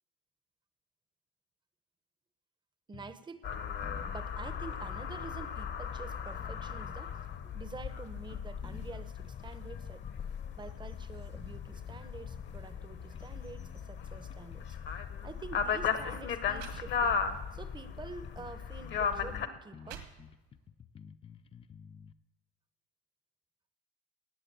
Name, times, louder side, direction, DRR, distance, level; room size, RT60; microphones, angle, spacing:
sound 1, 2.9-3.3 3.5-3.6 3.8-5.5 5.9-8.0 8.3-10.2 10.6-10.8 11.2-12.8 13.1-13.8 14.1-15.1 15.5-17.6 17.9-18.0 18.2-18.6 18.8-22.1, left 7 dB, 20° left, 0.4 m, -52 dB
voice 1, 2.9-3.6 4.1-7.2 7.4-10.0 10.6-14.8 15.2-17.2 17.5-20.0, right 4 dB, 15° right, 11 dB, 0.8 m, -47 dB
sound 2, 3.4-19.5, left 6 dB, 35° left, 0.9 m, -37 dB
sound 3, 15.3-15.5 16.2-16.3 16.5-17.4 18.0-18.2 18.9-19.0 19.5-20.7, right 9 dB, 70° right, 1.9 m, -50 dB
17.0 x 6.8 x 9.1 m, 1.1 s
cardioid pair, 145°, 32 cm